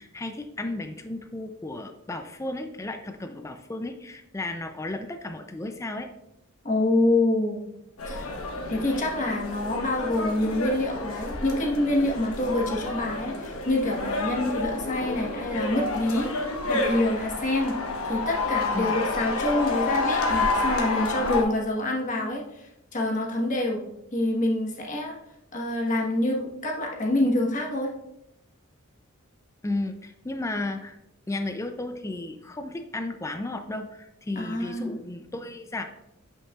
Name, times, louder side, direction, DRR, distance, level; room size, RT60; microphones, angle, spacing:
voice 1, 0.0-6.1 18.7-19.0 29.6-31.0 31.3-35.8, left 2 dB, 15° left, 7 dB, 0.4 m, -34 dB
voice 2, 6.6-7.6 8.0-8.3 8.7-16.3 16.7-17.7 18.0-23.8 24.1-25.1 25.5-27.9 34.3-35.0, left 1 dB, 35° left, -1 dB, 1.2 m, -26 dB
sound 1, 8.0-21.4, left 2 dB, 90° left, 1.1 m, -29 dB
8.2 x 5.6 x 2.4 m, 0.84 s
head